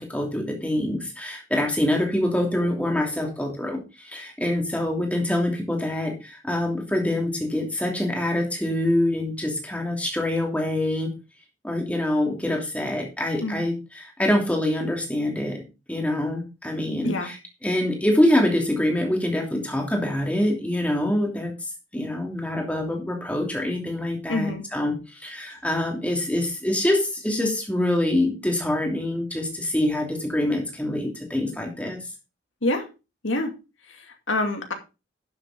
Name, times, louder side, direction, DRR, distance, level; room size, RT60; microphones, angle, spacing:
voice 1, 0.0-11.1 11.6-15.6 15.9-17.4 17.6-21.5 21.9-32.0, left 1 dB, 5° left, 2.9 m, -25 dB
voice 2, 24.3-24.6 32.6-32.9 33.2-33.6 33.9-34.7, left 2 dB, 85° left, 2.4 m, -26 dB
11.5 x 7.7 x 3.8 m
head